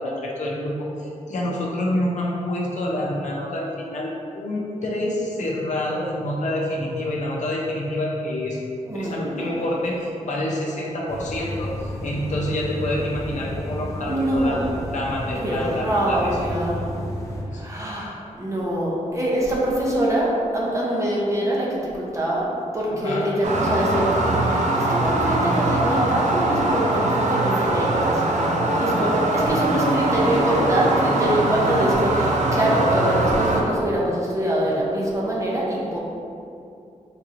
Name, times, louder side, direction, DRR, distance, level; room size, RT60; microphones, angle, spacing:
voice 1, 0.0-8.6 8.9-16.3 17.5-17.6 23.0-23.2 29.0-29.3, left 1 dB, 65° left, -4 dB, 0.6 m, -27 dB
voice 2, 8.9-9.7 14.1-14.7 15.4-16.8 17.5-22.5 22.7-28.2 28.8-36.0, right 1 dB, 25° right, -5 dB, 0.7 m, -24 dB
sound 1, 11.1-17.4, equal, 25° left, 0.5 m, -32 dB
sound 2, 23.4-33.6, right 2 dB, 60° right, 0.4 m, -22 dB
3.8 x 2.9 x 2.5 m, 2.6 s
wide cardioid pair, 125°, 13 cm